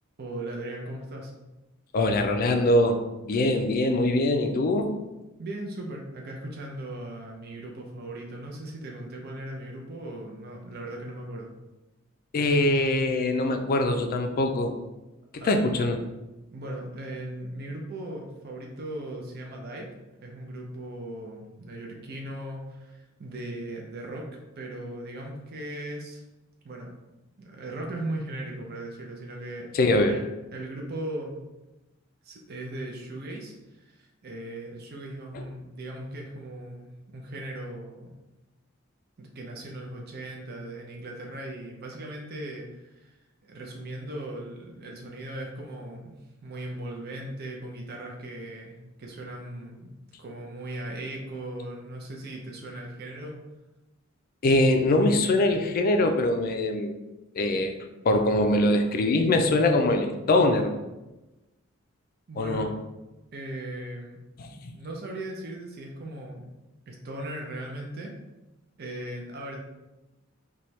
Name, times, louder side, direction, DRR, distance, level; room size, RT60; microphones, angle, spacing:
voice 1, 0.2-1.3 5.4-11.5 15.4-15.6 16.5-19.9 20.2-24.3 24.6-26.2 26.6-26.9 27.4-29.7 30.1-30.2 30.5-31.4 32.2-38.1 39.2-46.2 46.4-49.9 50.2-53.4 62.3-62.7 63.3-64.2 64.5-66.4 66.9-68.1 68.8-69.6, right 1 dB, 50° right, 0 dB, 0.6 m, -38 dB
voice 2, 1.9-4.9 12.3-14.7 15.4-16.0 29.7-30.1 54.4-57.0 57.3-57.7 58.0-60.7 62.4-62.7 64.4-64.5, left 2 dB, 45° left, 5 dB, 0.4 m, -23 dB
4.2 x 2.3 x 3.1 m, 1.0 s
head